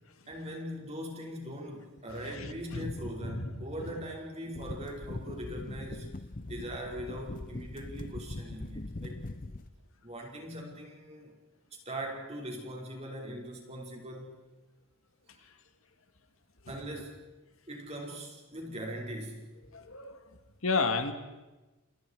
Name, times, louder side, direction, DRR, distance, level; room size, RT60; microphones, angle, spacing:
voice 1, 0.3-6.1 6.5-9.2 10.0-11.4 11.7-14.4 15.3-15.5 16.7-17.2 17.7-19.5, equal, 30° right, -1 dB, 5.5 m, -41 dB
voice 2, 2.2-2.9 3.2-3.6 15.4-15.5 19.7-20.2 20.6-21.1, left 4 dB, 75° left, 7 dB, 2.0 m, -32 dB
sound 1, 4.5-9.7, left 2 dB, 40° left, 0.9 m, -41 dB
30.0 x 28.0 x 4.9 m, 1.1 s
head